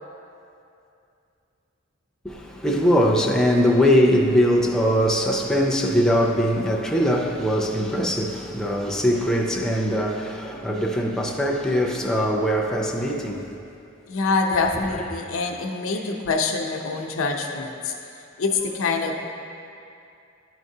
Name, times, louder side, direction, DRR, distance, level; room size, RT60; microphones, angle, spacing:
voice 1, 2.2-13.5, equal, 5° left, 0.4 m, -21 dB
voice 2, 14.1-17.9 18.4-19.2, left 4 dB, 90° left, 0.6 m, -25 dB
10.5 x 4.5 x 2.7 m
head